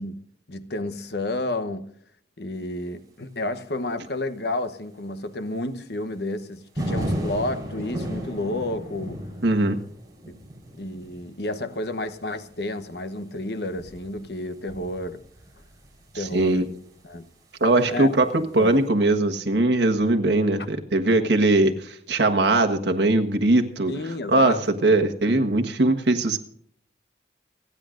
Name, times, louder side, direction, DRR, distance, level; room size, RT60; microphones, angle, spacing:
voice 1, 0.0-1.9 2.4-9.2 10.3-10.4 10.8-15.2 16.1-16.7 17.0-17.3 17.9-18.1 18.4-18.8 23.9-24.6, left 1 dB, 65° left, 1.0 m, -31 dB
sound 1, 6.8-16.9 18.4-18.6, equal, 20° right, 4.2 m, -34 dB
voice 2, 9.4-9.8 16.1-16.6 17.6-23.9 24.3-26.4, right 2 dB, 75° right, 1.5 m, -20 dB
29.5 x 9.8 x 2.6 m
head